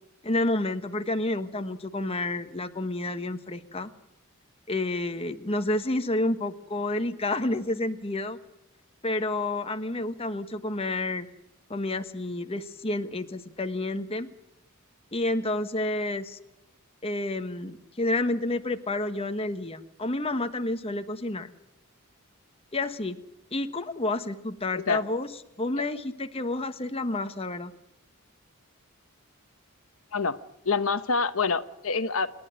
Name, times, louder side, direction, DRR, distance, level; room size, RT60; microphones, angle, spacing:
voice 1, 0.2-3.9 4.7-8.4 9.0-11.3 11.7-14.3 15.1-16.4 17.0-21.5 22.7-23.2 23.5-25.3 25.6-27.7, left 2 dB, 25° left, 8 dB, 1.3 m, -29 dB
voice 2, 30.6-32.3, left 4 dB, 65° left, 11 dB, 1.1 m, -26 dB
28.5 x 11.5 x 9.9 m, 0.89 s
head